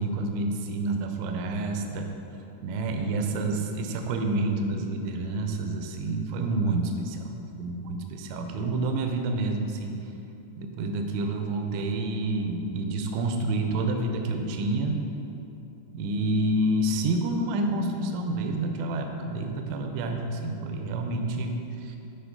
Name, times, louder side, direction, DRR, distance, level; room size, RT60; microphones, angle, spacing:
voice 1, 0.0-2.1 2.6-7.3 7.6-10.0 10.6-15.0 15.9-22.0, right 2 dB, 85° right, 4 dB, 3.0 m, -28 dB
9.0 x 4.3 x 5.2 m, 2.8 s
omnidirectional pair, 6.0 m